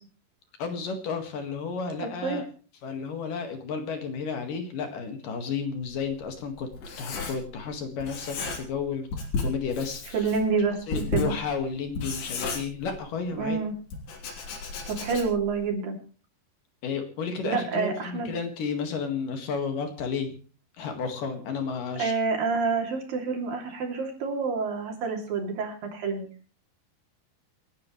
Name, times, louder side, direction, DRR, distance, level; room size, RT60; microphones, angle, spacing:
voice 1, 0.6-2.5 2.8-6.7 7.0-9.1 9.4-10.3 10.9-13.6 15.1-15.2 16.8-20.3 20.8-22.1, left 5 dB, 60° left, 5 dB, 3.3 m, -32 dB
Writing, 5.8-7.7 8.0-8.8 9.1-13.3 13.9-15.5, left 3 dB, 80° left, 5.2 m, -34 dB
voice 2, 10.1-11.3 13.4-13.7 14.9-16.0 17.4-18.3 22.0-26.3, right 4 dB, 60° right, 2 dB, 4.6 m, -28 dB
28.5 x 10.5 x 3.2 m, 0.38 s
omnidirectional pair, 4.6 m